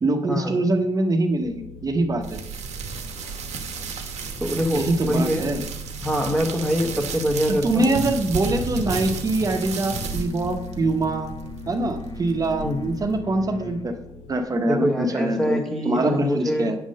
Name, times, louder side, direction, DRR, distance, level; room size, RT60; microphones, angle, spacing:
voice 1, 0.0-2.4 4.7-5.6 7.5-11.3 11.7-13.9 14.3-15.6 15.8-16.8, right 2 dB, 30° right, 5 dB, 0.9 m, -24 dB
sound 1, 1.4-14.4, left 5 dB, 85° left, 1.0 m, -43 dB
sound 2, 2.2-13.2, right 5 dB, 85° right, 1.0 m, -33 dB
voice 2, 4.4-5.5 6.0-7.9 12.6-12.8 14.7-16.8, equal, 5° left, 2 dB, 1.0 m, -24 dB
sound 3, 6.6-13.9, left 3 dB, 40° left, 0.6 m, -40 dB
8.7 x 3.7 x 6.3 m, 0.84 s
cardioid pair, 110°, 11 cm